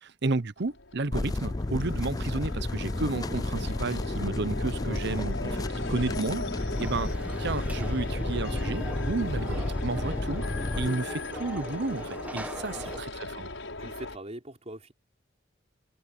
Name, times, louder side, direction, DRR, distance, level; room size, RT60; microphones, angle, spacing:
voice 1, 0.0-7.1 7.4-10.4 10.7-13.5, right 3 dB, 60° right, 0.9 m, -32 dB
sound 1, 0.6-14.2, left 2 dB, 85° left, 6.5 m, -38 dB
sound 2, 1.1-10.9, left 2 dB, 20° left, 0.5 m, -32 dB
Conversation / Crowd, 6.7-13.0, right 1 dB, 10° right, 1.6 m, -42 dB
voice 2, 13.8-14.9, right 1 dB, 35° right, 4.5 m, -42 dB
open air
head